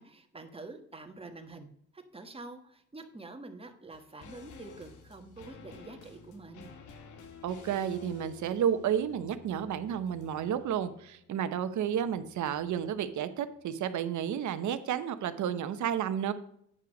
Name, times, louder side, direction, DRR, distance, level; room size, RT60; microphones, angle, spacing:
voice 1, 0.0-6.7, right 3 dB, 20° right, 5 dB, 1.6 m, -47 dB
sound 1, 3.9-13.3 13.5-13.6, left 6 dB, 85° left, 1.4 m, -53 dB
voice 2, 7.4-16.3, right 9 dB, 75° right, 11 dB, 1.0 m, -31 dB
9.6 x 5.7 x 5.3 m, 0.68 s
cardioid pair, 90°, 30 cm